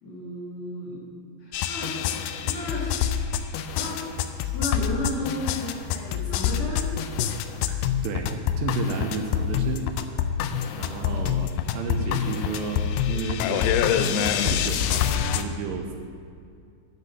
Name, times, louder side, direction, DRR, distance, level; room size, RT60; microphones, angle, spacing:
voice 1, 0.0-1.1 1.4-1.9 2.4-2.9 3.7-4.0 4.4-6.8 10.8-11.1, left 1 dB, 55° left, -6 dB, 3.1 m, -33 dB
sound 1, 1.5-15.4, left 9 dB, 85° left, 2.4 m, -26 dB
voice 2, 7.7-8.3 8.6-10.2 10.8-15.1 15.4-15.9, right 5 dB, 80° right, 3 dB, 2.7 m, -32 dB
12.5 x 5.3 x 5.4 m, 2.3 s
omnidirectional pair, 5.1 m